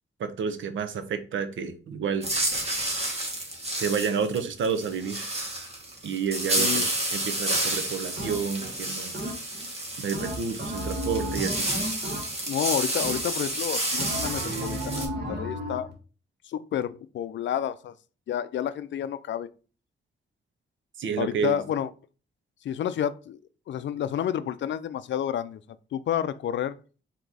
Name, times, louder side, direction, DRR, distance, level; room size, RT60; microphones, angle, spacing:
voice 1, 0.2-2.3 3.8-5.3 6.0-9.1 10.0-11.7 21.0-21.6, right 6 dB, 85° right, 0.7 m, -30 dB
sound 1, 2.2-15.1, right 1 dB, 30° right, 1.7 m, -30 dB
sound 2, 8.2-8.7 9.1-9.7 10.1-12.6 13.0-13.5 14.0-15.9, right 1 dB, 60° right, 1.6 m, -33 dB
voice 2, 12.5-15.9 16.4-17.9 18.3-19.5 21.2-21.9 22.6-23.4 23.7-25.6 25.9-26.8, left 10 dB, 70° left, 0.4 m, -30 dB
4.6 x 2.9 x 3.9 m
cardioid pair, 90°, 19 cm